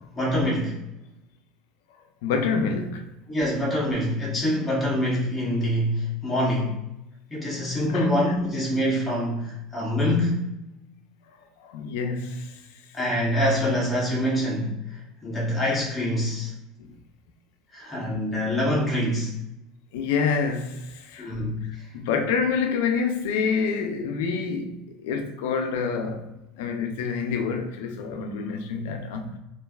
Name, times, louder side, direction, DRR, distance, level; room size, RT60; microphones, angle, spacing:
voice 1, 0.1-0.8 3.3-6.8 7.3-10.5 12.9-16.5 17.7-19.3 21.2-21.8, left 1 dB, 15° left, 1.0 m, -25 dB
voice 2, 2.2-3.1 7.9-8.3 11.6-12.6 16.8-16.9 19.9-21.4 21.9-26.3 26.6-29.4, left 5 dB, 85° left, 0.4 m, -27 dB
3.1 x 2.5 x 2.3 m
cardioid pair, 155°, 0 cm